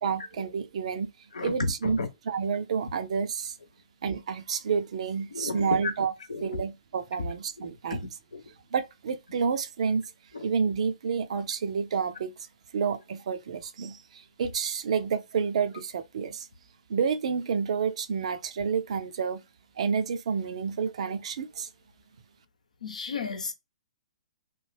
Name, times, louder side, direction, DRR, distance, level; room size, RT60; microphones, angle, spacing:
voice 1, 0.0-1.1 1.4-2.0 2.3-3.6 4.0-6.1 6.4-8.1 8.7-10.1 10.4-12.5 12.7-16.5 16.9-19.4 19.8-21.7, right 6 dB, 60° right, 0.5 m, -29 dB
voice 2, 1.3-2.1 5.3-5.9 6.3-6.5 7.9-8.0 8.3-8.4 10.3-10.5 22.8-23.5, left 3 dB, 80° left, 0.8 m, -32 dB
3.2 x 2.2 x 3.3 m
hypercardioid pair, 125°, 4 cm